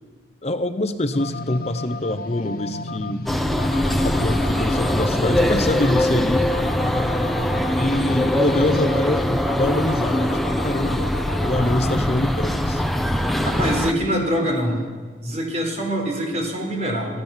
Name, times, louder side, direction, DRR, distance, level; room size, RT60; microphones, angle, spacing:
voice 1, 0.4-3.3 4.0-6.5 7.7-12.8, left 1 dB, 35° left, 10 dB, 0.8 m, -25 dB
sound 1, 1.1-14.9, left 2 dB, 55° left, 1.1 m, -34 dB
sound 2, 3.3-13.9, left 1 dB, ahead, 0.9 m, -22 dB
voice 2, 13.4-14.8 15.2-17.2, equal, 40° right, 1 dB, 4.6 m, -24 dB
24.5 x 15.0 x 7.4 m, 1.5 s
head